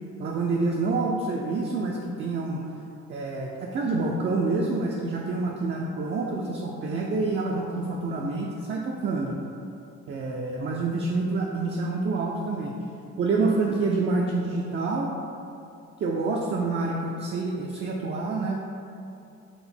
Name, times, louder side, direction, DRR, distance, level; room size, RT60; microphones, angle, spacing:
voice 1, 0.2-2.6 3.1-9.4 10.1-12.7 13.2-15.1 16.0-18.6, right 3 dB, 40° right, -1 dB, 0.4 m, -27 dB
4.9 x 2.0 x 3.3 m, 2.6 s
cardioid pair, 90°, 30 cm